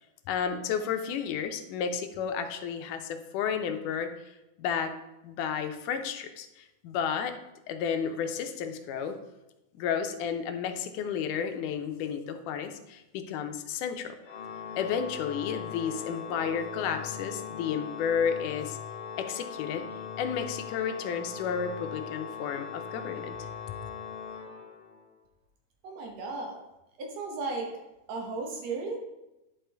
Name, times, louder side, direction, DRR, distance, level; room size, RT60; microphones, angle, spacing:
voice 1, 0.3-4.9 5.2-7.4 7.7-9.2 9.7-14.2 14.8-18.8 19.2-19.8 20.2-23.5, left 7 dB, 80° left, 7 dB, 2.1 m, -32 dB
Organ, 14.2-25.1, left 7 dB, 65° left, 2.0 m, -40 dB
voice 2, 25.8-26.6 27.0-27.7 28.1-29.0, right 3 dB, 65° right, 1 dB, 2.0 m, -35 dB
10.0 x 5.1 x 3.4 m, 0.95 s
omnidirectional pair, 3.6 m